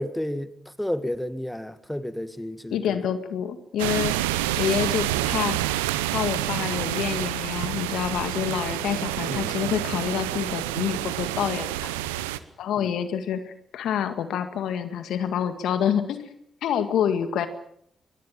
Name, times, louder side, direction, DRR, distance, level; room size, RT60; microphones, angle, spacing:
voice 1, 0.0-3.0 9.3-9.7 12.8-12.9, left 1 dB, 5° left, 2.1 m, -32 dB
voice 2, 2.7-4.1 4.6-5.6 6.1-11.9 12.6-16.3 16.6-17.5, left 9 dB, 70° left, 2.0 m, -27 dB
sound 1, 3.8-12.4, right 15 dB, 85° right, 0.9 m, -28 dB
24.0 x 21.0 x 7.4 m
hypercardioid pair, 40°, 0 cm